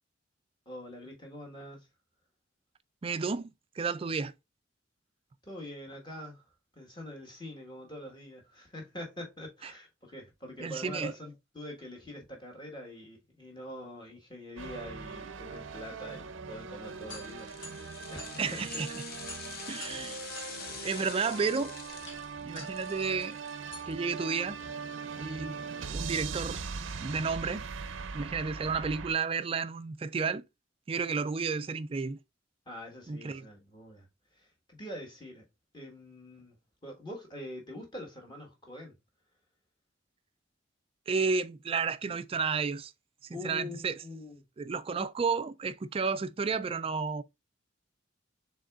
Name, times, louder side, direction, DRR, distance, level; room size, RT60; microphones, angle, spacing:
voice 1, 0.6-1.9 5.5-6.4 6.7-18.6 19.7-20.0 32.7-34.1 34.4-35.4 35.7-39.0 43.3-44.4, left 1 dB, 25° left, 1.4 m, -44 dB
voice 2, 3.0-4.3 9.6-9.7 10.6-11.1 18.4-18.9 19.7-20.2 20.7-21.7 22.4-23.4 23.9-24.6 25.2-25.6 25.9-26.6 27.0-27.7 28.1-30.4 30.9-32.2 33.1-33.5 41.1-42.9 43.2-44.0 44.6-47.2, right 5 dB, 30° right, 0.3 m, -32 dB
sound 1, 14.6-29.1, right 5 dB, 85° right, 0.5 m, -41 dB
sound 2, 16.7-25.8, left 2 dB, 75° left, 2.1 m, -50 dB
sound 3, 16.9-24.2 24.6-24.7, left 5 dB, 50° left, 0.9 m, -46 dB
6.2 x 3.5 x 2.4 m
head